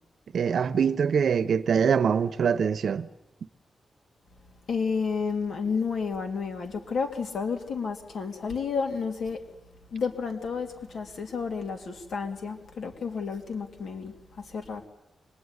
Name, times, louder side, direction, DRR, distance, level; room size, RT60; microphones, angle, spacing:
voice 1, 0.3-3.1, right 7 dB, 60° right, 0.9 m, -24 dB
voice 2, 4.7-9.4 9.9-14.9, left 5 dB, 65° left, 2.7 m, -31 dB
25.5 x 22.0 x 9.7 m
wide cardioid pair, 175°, 0 cm